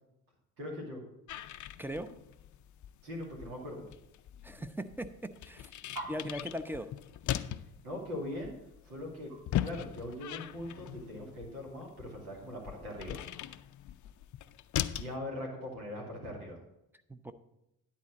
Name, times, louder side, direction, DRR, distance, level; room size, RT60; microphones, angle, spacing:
voice 1, 0.6-1.0 3.0-3.9 7.5-8.5 8.8-9.3 9.6-13.2 15.0-16.6, left 1 dB, 80° right, -1 dB, 2.5 m, -41 dB
sound 1, 1.3-15.2, left 11 dB, 45° left, 0.5 m, -40 dB
voice 2, 1.8-2.1 4.4-5.7 6.1-6.9 17.1-17.3, equal, 5° right, 10 dB, 0.7 m, -39 dB
sound 2, 5.9-10.5, right 2 dB, 50° right, 3.2 m, -48 dB
10.5 x 4.2 x 7.4 m, 0.88 s
hypercardioid pair, 50°, 43 cm